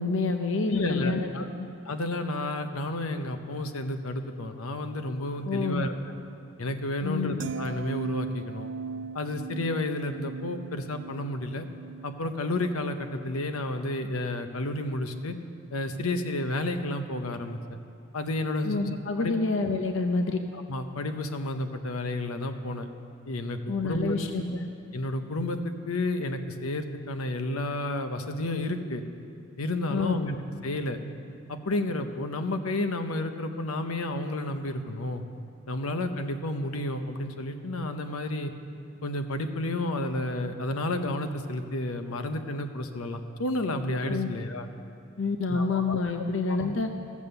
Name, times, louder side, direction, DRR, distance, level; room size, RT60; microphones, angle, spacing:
voice 1, 0.0-1.3 5.4-5.8 7.0-7.3 18.6-20.4 23.7-24.7 29.9-30.2 44.1-44.3 45.2-46.9, left 3 dB, 65° left, 6 dB, 0.6 m, -28 dB
voice 2, 0.7-1.5 1.9-5.9 6.6-8.7 9.1-11.7 12.0-15.3 15.7-17.6 18.1-19.3 20.5-22.9 23.3-24.2 24.9-29.0 29.6-30.4 30.6-31.0 31.5-35.2 35.7-38.5 39.0-44.7 45.5-46.0 46.5-46.7, left 1 dB, 90° left, 7 dB, 0.8 m, -31 dB
sound 1, 7.4-13.7 14.0-14.3, right 5 dB, 55° right, 0.3 m, -39 dB
15.5 x 7.3 x 6.8 m, 2.5 s
head